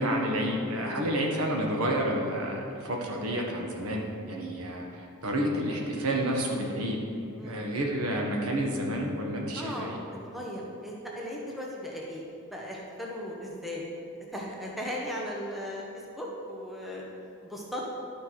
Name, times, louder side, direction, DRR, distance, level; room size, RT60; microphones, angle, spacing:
voice 1, 0.0-7.0 7.4-10.0, equal, 80° right, 0 dB, 1.4 m, -30 dB
voice 2, 0.8-1.2 7.4-7.8 9.6-9.9 10.2-13.8 14.3-15.9 16.2-17.0 17.4-17.8, equal, ahead, -3 dB, 1.0 m, -37 dB
11.5 x 5.3 x 4.7 m, 2.5 s
head